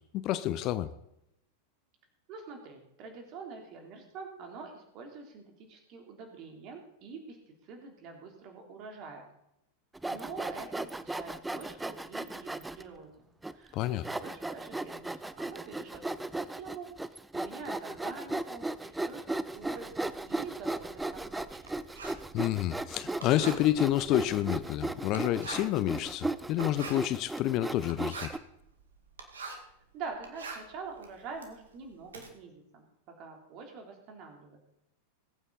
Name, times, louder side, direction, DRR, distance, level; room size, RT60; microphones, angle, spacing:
voice 1, 0.1-0.9 13.7-14.0 22.3-28.3, left 13 dB, 40° left, 14 dB, 0.7 m, -29 dB
voice 2, 2.3-7.4 7.6-9.3 10.1-13.3 13.5-16.9 17.3-19.9 20.2-21.7 29.9-32.8 33.2-34.6, right 4 dB, 40° right, 3 dB, 3.4 m, -45 dB
Sawing, 9.9-12.8 13.4-13.5 14.0-28.4, right 2 dB, 5° right, 0.6 m, -36 dB
Writing, 19.5-29.8 30.1-32.3, right 4 dB, 70° right, 2.0 m, -45 dB
21.0 x 8.9 x 4.0 m, 0.82 s
figure-of-eight pair, 90°, 0 cm